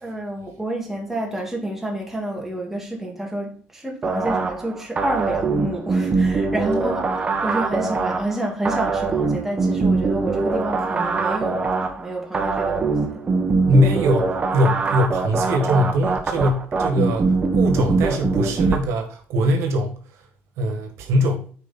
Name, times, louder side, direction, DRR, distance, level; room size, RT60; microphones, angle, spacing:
voice 1, 0.0-13.2, right 1 dB, 5° right, 2.5 m, -29 dB
sound 1, 4.0-18.8, right 4 dB, 25° right, 1.2 m, -22 dB
voice 2, 13.7-19.9 20.6-21.5, equal, 80° right, 1.8 m, -21 dB
9.3 x 4.7 x 4.3 m
cardioid pair, 130°, 5 cm